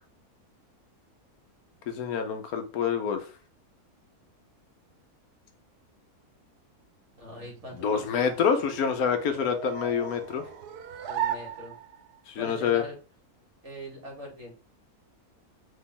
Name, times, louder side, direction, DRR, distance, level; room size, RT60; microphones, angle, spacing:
voice 1, 1.9-3.3 7.8-10.4 12.3-12.8, left 7 dB, 75° left, 7 dB, 1.1 m, -27 dB
voice 2, 7.2-8.5 11.0-11.8 12.3-13.0 13.6-14.5, left 1 dB, 50° right, -1 dB, 2.1 m, -42 dB
sound 1, 7.2-12.2, right 10 dB, 90° right, 1.2 m, -37 dB
4.2 x 2.9 x 3.6 m, 0.35 s
omnidirectional pair, 1.6 m